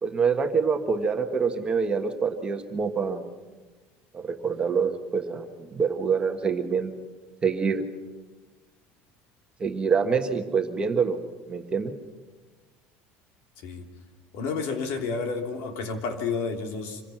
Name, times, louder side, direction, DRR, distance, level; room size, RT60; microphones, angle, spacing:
voice 1, 0.0-3.2 4.1-6.9 7.4-7.8 9.6-11.2 11.5-11.9, right 5 dB, 20° right, 4 dB, 1.4 m, -26 dB
voice 2, 14.3-17.0, left 4 dB, 65° left, 4 dB, 3.1 m, -30 dB
26.5 x 16.5 x 6.0 m, 1.3 s
cardioid pair, 160°, 5 cm